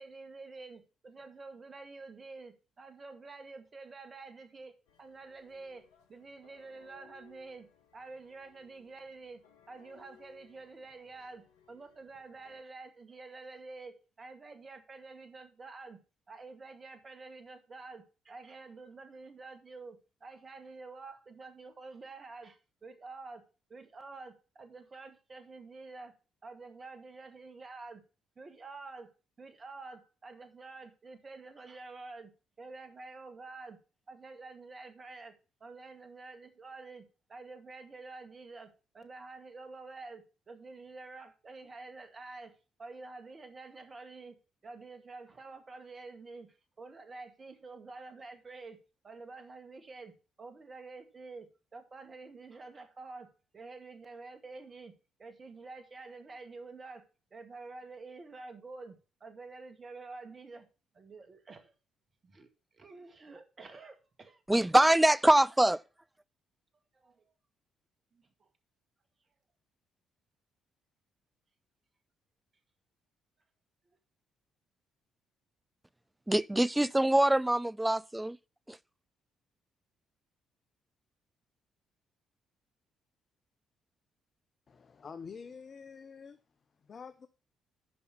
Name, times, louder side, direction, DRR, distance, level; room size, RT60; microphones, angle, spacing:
voice 1, 0.0-4.7 5.0-7.7 7.9-9.4 9.7-16.0 16.3-26.1 26.4-28.0 28.4-29.1 29.4-32.3 32.6-33.8 34.1-37.0 37.3-44.4 44.6-60.7 60.9-61.7 62.2-62.5 62.7-64.4 66.9-67.2 68.1-68.5, right 3 dB, 40° right, 2.0 m, -48 dB
sound 1, 4.9-12.6, left 7 dB, 80° left, 1.0 m, -64 dB
voice 2, 64.5-65.8 76.3-78.4 78.7-78.8, right 1 dB, 10° right, 0.4 m, -24 dB
voice 3, 84.7-86.4 86.8-87.3, left 6 dB, 45° left, 0.7 m, -47 dB
9.5 x 5.6 x 5.8 m
hypercardioid pair, 45°, 0 cm